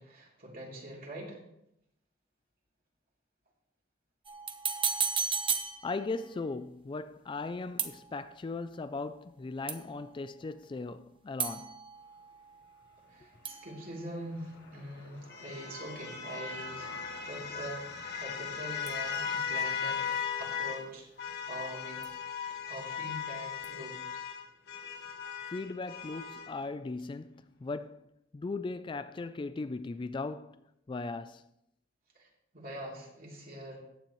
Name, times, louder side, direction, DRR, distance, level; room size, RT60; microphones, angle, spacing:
voice 1, 0.0-1.4 13.1-16.9 17.2-20.0 20.4-22.0 22.7-24.2 32.1-32.3 32.5-33.8, right 1 dB, 50° right, 3.2 m, -43 dB
sound 1, 4.3-6.4 7.8-8.5 9.7-10.2 11.4-13.2 13.5-14.6 18.9-19.6 22.0-22.7 23.6-23.7, right 6 dB, 25° right, 0.8 m, -36 dB
voice 2, 5.8-11.8 25.5-28.1 28.3-31.4, left 3 dB, 25° left, 0.3 m, -38 dB
sound 2, 14.2-20.9 21.2-26.5, left 7 dB, 55° left, 1.5 m, -38 dB
14.5 x 9.3 x 3.1 m
head